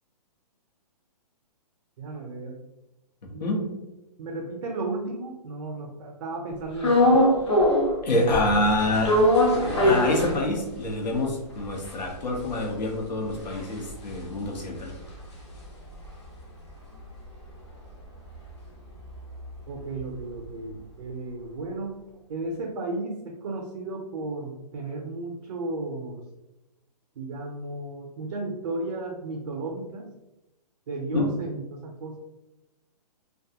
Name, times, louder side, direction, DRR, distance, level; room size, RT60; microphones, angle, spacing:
voice 1, 2.0-2.6 3.3-3.7 4.2-7.2 19.7-22.0 22.3-26.2 27.2-30.1 30.9-32.2, right 2 dB, 50° right, -1 dB, 0.4 m, -34 dB
voice 2, 3.4-3.7 8.0-9.2 9.8-14.9 31.1-31.2, left 2 dB, 85° left, 1 dB, 0.8 m, -26 dB
sound 1, 6.8-8.0 8.3-10.9 11.3-11.4 11.6-16.1 16.4-20.5, left 1 dB, 40° left, 0.6 m, -24 dB
2.4 x 2.2 x 2.7 m, 0.96 s
hypercardioid pair, 165°, 21 cm